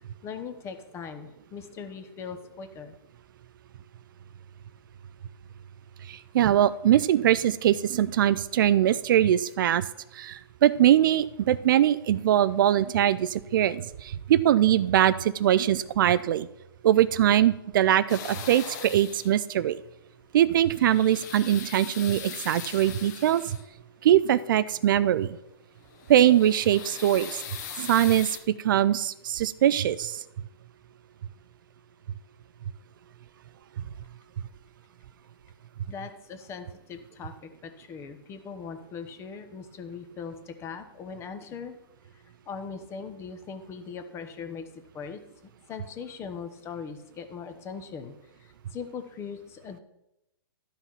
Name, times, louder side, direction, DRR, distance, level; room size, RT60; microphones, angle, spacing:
voice 1, 0.2-2.9 35.9-41.8 42.1-44.7 44.9-45.2 45.7-48.1 48.4-49.8, left 6 dB, 20° left, 8 dB, 1.0 m, -40 dB
voice 2, 6.1-9.8 10.2-16.5 16.8-19.8 20.3-23.4 24.0-25.4 26.1-27.4 27.8-28.4 28.6-30.2, right 11 dB, 55° right, 16 dB, 0.4 m, -22 dB
sound 1, 18.1-19.4 20.5-23.8 25.8-28.4, left 8 dB, 45° left, 1.4 m, -40 dB
12.0 x 5.8 x 5.6 m, 0.88 s
hypercardioid pair, 140°, 13 cm